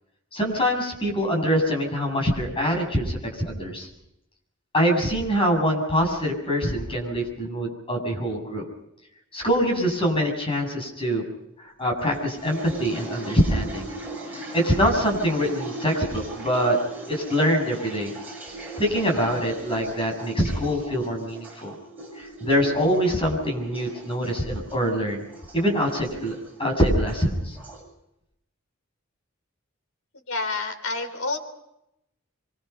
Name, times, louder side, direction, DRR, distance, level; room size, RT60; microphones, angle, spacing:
voice 1, 0.3-3.9 4.7-8.6 9.3-11.2 11.8-13.8 14.3-16.8 17.1-18.1 18.8-21.7 22.2-25.2 25.5-27.6, equal, 25° left, 2 dB, 7.3 m, -24 dB
sound 1, 12.1-27.8, right 2 dB, 10° right, 7.9 m, -39 dB
voice 2, 30.3-31.4, left 3 dB, 80° left, 7 dB, 3.9 m, -28 dB
25.5 x 24.5 x 5.8 m, 0.83 s
head